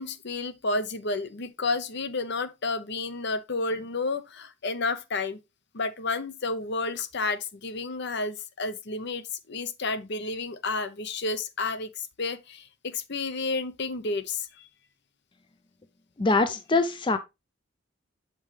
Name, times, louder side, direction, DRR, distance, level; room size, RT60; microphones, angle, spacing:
voice 1, 0.0-5.4 5.7-14.5, left 3 dB, 60° left, 0.8 m, -31 dB
voice 2, 16.2-17.2, left 3 dB, 25° left, 0.5 m, -23 dB
7.5 x 5.3 x 3.2 m
head